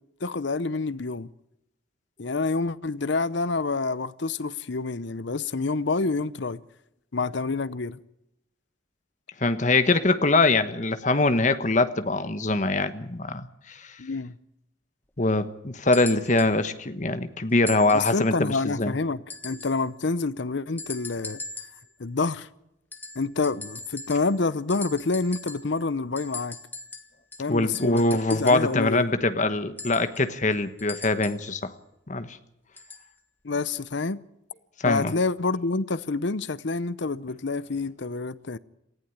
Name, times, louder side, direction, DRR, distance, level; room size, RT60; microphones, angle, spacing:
voice 1, 0.2-1.3 2.2-6.6 7.1-8.0 14.0-14.4 17.9-21.4 22.0-22.5 23.1-26.6 27.4-28.0 28.3-29.1 33.4-34.2 34.8-38.6, left 3 dB, 60° left, 0.7 m, -28 dB
voice 2, 9.4-14.0 15.2-18.9 27.5-31.7 32.1-32.4 34.8-35.1, left 2 dB, 35° left, 1.3 m, -23 dB
sound 1, 15.9-16.6 17.7-18.3 19.3-19.8 20.8-21.9 22.9-24.4 24.7-25.8 26.2-28.7 29.8-31.5 32.8-33.1 34.0-34.1, left 3 dB, 10° left, 1.4 m, -40 dB
19.0 x 15.0 x 9.4 m
head